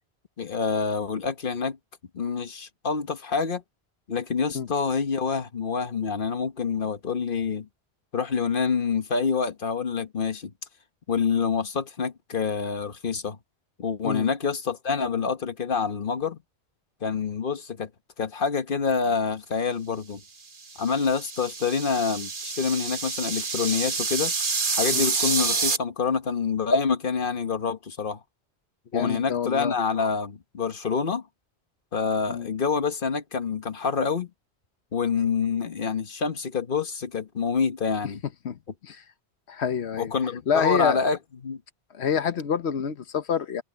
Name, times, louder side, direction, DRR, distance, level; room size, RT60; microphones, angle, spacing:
voice 1, 0.4-1.8 2.1-3.6 4.1-7.7 8.1-10.5 11.1-13.4 13.8-16.4 17.0-17.9 18.2-20.2 20.8-24.3 24.7-28.2 28.9-31.2 31.9-34.3 34.9-38.2 40.0-41.6, left 5 dB, 55° left, 1.4 m, -27 dB
sound 1, 20.6-25.8, right 4 dB, 55° right, 1.6 m, -28 dB
voice 2, 28.9-29.7 32.3-32.5 38.4-38.6 38.8-39.0 39.5-40.1 40.5-41.1 41.9-43.6, left 7 dB, 85° left, 1.2 m, -27 dB
omnidirectional pair, 1.1 m